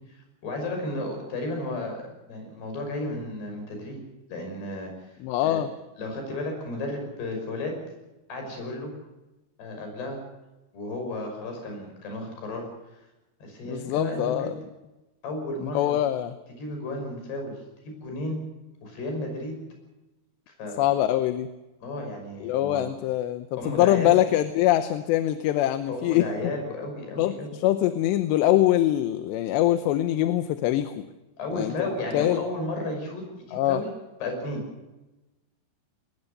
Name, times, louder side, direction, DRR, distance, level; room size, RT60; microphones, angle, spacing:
voice 1, 0.1-2.0 2.3-4.0 4.3-5.2 5.4-5.6 6.0-7.7 8.3-8.9 9.6-10.2 10.7-12.7 13.4-14.5 15.2-16.0 16.6-17.5 17.8-18.4 18.8-19.6 20.5-20.9 21.8-22.9 23.6-24.2 25.9-27.5 31.4-33.9 34.2-34.6, left 2 dB, 65° left, 3 dB, 7.8 m, -33 dB
voice 2, 5.2-5.7 13.7-14.5 15.7-16.3 20.8-21.5 22.4-26.2 27.2-30.9 31.5-32.4 33.5-33.8, left 13 dB, 80° left, 10 dB, 3.0 m, -23 dB
21.5 x 20.5 x 6.7 m, 1.1 s
omnidirectional pair, 5.0 m